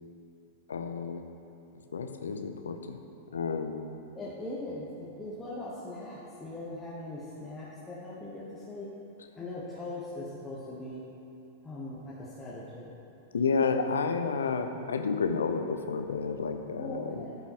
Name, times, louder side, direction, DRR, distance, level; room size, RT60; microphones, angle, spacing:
voice 1, 0.7-1.2 1.9-3.1 3.3-3.9 13.3-17.3, left 5 dB, 70° left, 7 dB, 0.6 m, -31 dB
voice 2, 4.1-8.9 9.4-11.0 11.6-12.9 13.6-13.7 14.8-14.9 16.8-17.4, left 2 dB, 10° left, -8 dB, 1.3 m, -40 dB
13.5 x 5.5 x 3.1 m, 2.9 s
figure-of-eight pair, 95°, 0 cm